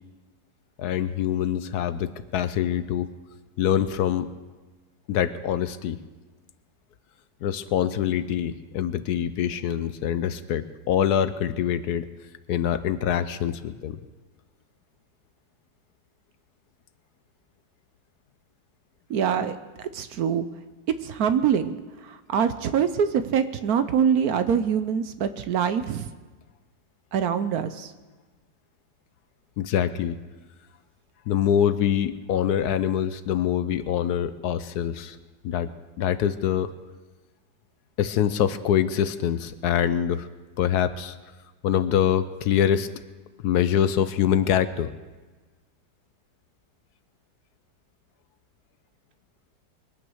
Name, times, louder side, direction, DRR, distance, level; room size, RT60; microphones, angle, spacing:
voice 1, 0.8-3.1 3.6-4.3 5.1-6.0 7.4-12.1 12.5-14.0 29.6-30.2 31.3-35.2 35.4-35.7 36.0-36.7 38.0-40.3 40.6-41.2 41.6-42.9 43.4-44.9, left 9 dB, 70° left, 13 dB, 1.1 m, -24 dB
voice 2, 19.1-19.6 19.9-20.5 20.9-21.8 22.0-26.1 27.1-27.9, right 7 dB, 65° right, 11 dB, 1.1 m, -24 dB
22.5 x 9.2 x 6.3 m, 1.3 s
omnidirectional pair, 1.9 m